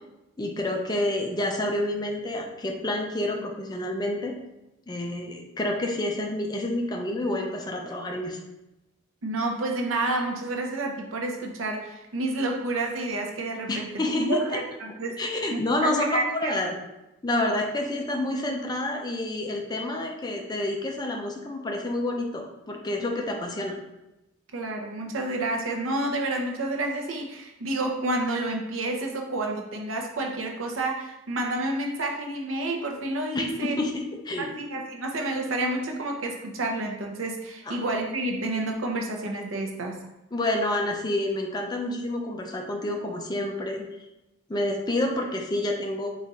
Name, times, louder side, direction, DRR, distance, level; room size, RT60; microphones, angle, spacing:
voice 1, 0.4-4.3 4.9-8.4 13.7-14.4 15.2-16.8 17.2-23.8 33.3-34.6 37.7-37.8 40.3-43.8 44.5-46.1, left 1 dB, 20° left, 1 dB, 0.5 m, -28 dB
voice 2, 9.2-15.2 15.5-16.6 24.5-33.8 34.4-40.0, right 2 dB, 90° right, 2 dB, 0.7 m, -29 dB
4.0 x 2.4 x 4.1 m, 0.95 s
head